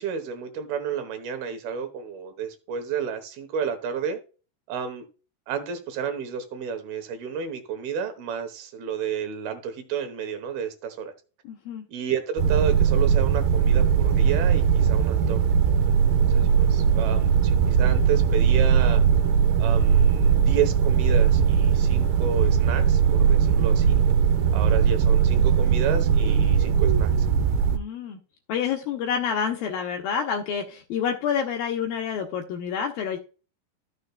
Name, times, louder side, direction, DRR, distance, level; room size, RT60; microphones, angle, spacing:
voice 1, 0.0-4.2 4.7-5.1 5.5-11.1 11.9-15.4 16.2-19.0 19.6-24.0 24.5-27.1, right 7 dB, 70° right, 8 dB, 2.8 m, -31 dB
voice 2, 11.4-11.8 16.9-17.2 27.7-28.2 28.5-33.2, left 7 dB, 75° left, 2 dB, 2.3 m, -28 dB
sound 1, 12.4-27.8, right 7 dB, 85° right, 2.0 m, -20 dB
13.5 x 6.7 x 2.3 m, 0.34 s
omnidirectional pair, 5.0 m